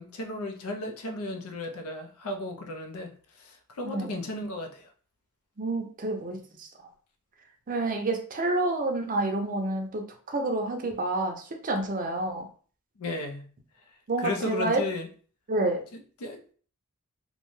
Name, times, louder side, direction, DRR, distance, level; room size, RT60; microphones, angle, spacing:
voice 1, 0.0-4.9 13.0-13.5 14.2-15.1 15.9-16.4, left 2 dB, 75° left, 5 dB, 0.5 m, -35 dB
voice 2, 5.6-6.7 7.7-10.0 10.3-12.4 14.1-14.8 15.5-15.8, right 2 dB, 35° right, 4 dB, 0.5 m, -28 dB
2.6 x 2.2 x 3.1 m, 0.43 s
head